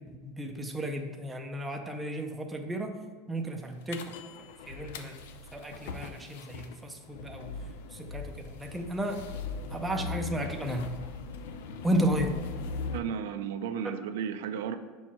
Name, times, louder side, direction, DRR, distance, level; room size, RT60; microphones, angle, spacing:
voice 1, 0.1-2.9 3.3-4.1 4.7-5.1 5.5-7.5 7.9-9.2 9.7-11.0 11.8-12.3, right 1 dB, 5° right, 3 dB, 0.5 m, -33 dB
sound 1, 3.9-13.0, left 5 dB, 80° left, 0.6 m, -40 dB
voice 2, 12.9-14.8, right 8 dB, 80° right, 9 dB, 0.5 m, -34 dB
6.3 x 4.6 x 4.2 m, 1.5 s
supercardioid pair, 170°, 0 cm